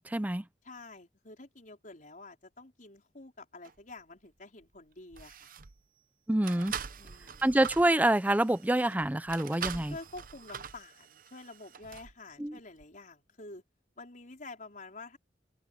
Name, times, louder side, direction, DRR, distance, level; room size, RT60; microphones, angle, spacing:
voice 1, 0.0-0.4 6.3-6.7 7.4-9.9 12.4-12.6, right 1 dB, 10° right, 0.6 m, -26 dB
voice 2, 0.6-5.5 7.0-7.4 9.6-13.6 14.0-15.2, left 3 dB, 50° left, 4.5 m, -48 dB
sound 1, 3.6-3.8 4.6-4.8 5.1-5.8 6.4-12.1 12.8-12.9, right 7 dB, 50° right, 0.7 m, -43 dB
head